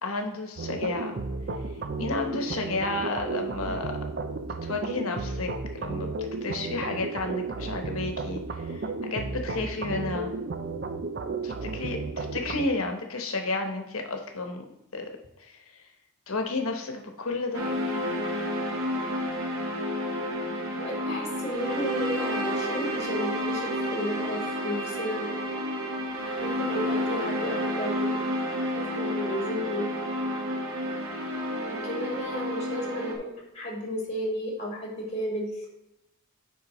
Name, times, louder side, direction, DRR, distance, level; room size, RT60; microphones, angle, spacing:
voice 1, 0.0-1.2 2.0-3.9 4.6-10.3 11.4-14.7 14.9-15.1 15.4-15.8 16.3-17.7, left 3 dB, 90° left, 4 dB, 1.0 m, -32 dB
sound 1, 0.6-12.7, right 3 dB, 50° right, 0.5 m, -33 dB
sound 2, 17.5-33.2, equal, 90° right, 1.1 m, -30 dB
voice 2, 20.8-25.3 26.4-28.2 28.7-29.9 31.6-35.6, left 1 dB, 30° left, -2 dB, 2.0 m, -33 dB
7.8 x 5.3 x 3.1 m, 0.92 s
head